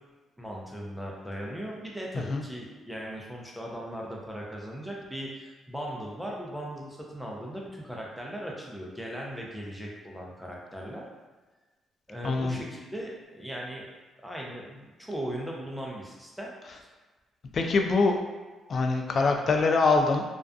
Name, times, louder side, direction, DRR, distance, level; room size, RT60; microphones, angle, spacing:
voice 1, 0.4-11.1 12.1-13.8 14.2-16.9, equal, ahead, -3 dB, 0.5 m, -38 dB
voice 2, 12.2-12.6 17.5-18.2 18.7-20.2, left 3 dB, 50° left, 3 dB, 0.3 m, -24 dB
2.4 x 2.3 x 2.3 m, 1.2 s
cardioid pair, 90°, 0 cm